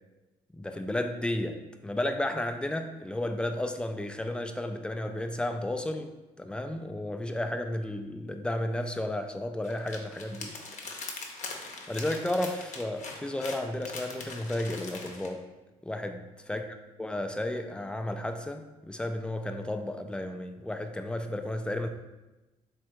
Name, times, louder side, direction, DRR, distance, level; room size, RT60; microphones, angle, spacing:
voice 1, 0.5-1.6 1.8-6.1 6.4-10.6 11.9-15.4 15.8-16.2 16.5-16.6 17.0-21.9, left 1 dB, 5° left, 6 dB, 0.4 m, -33 dB
sound 1, 9.6-15.3, left 3 dB, 45° left, 0.7 m, -41 dB
3.3 x 3.3 x 3.1 m, 1.1 s
hypercardioid pair, 55°, 17 cm